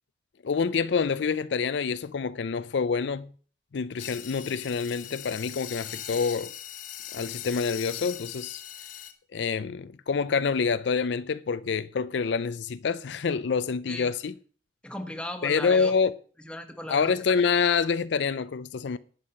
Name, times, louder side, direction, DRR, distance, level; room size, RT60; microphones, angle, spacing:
voice 1, 0.4-3.3 3.7-6.5 7.1-8.6 9.3-14.3 15.4-16.1 16.9-19.0, left 5 dB, 70° left, 0.5 m, -27 dB
sound 1, 4.0-9.1, left 11 dB, 50° left, 1.2 m, -40 dB
voice 2, 14.8-15.9 16.4-17.2, left 1 dB, 5° left, 1.4 m, -36 dB
11.0 x 8.2 x 5.6 m
head